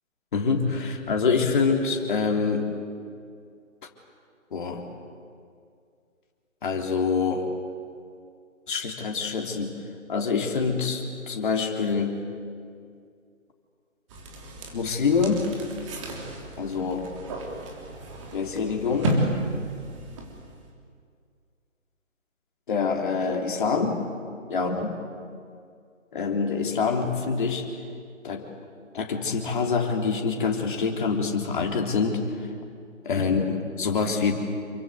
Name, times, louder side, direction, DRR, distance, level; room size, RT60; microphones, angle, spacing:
voice 1, 0.3-2.7 4.5-4.8 6.6-7.5 8.7-9.8 10.1-12.2 14.7-15.5 16.6-17.1 18.3-19.2 22.7-24.0 24.5-25.0 26.1-27.7 28.2-28.5 28.9-32.2 33.0-34.3, left 5 dB, 40° left, 2 dB, 3.5 m, -25 dB
sound 1, 14.1-20.7, right 1 dB, 25° right, 3.5 m, -33 dB
28.5 x 24.0 x 8.3 m, 2.3 s
figure-of-eight pair, 150°, 40 cm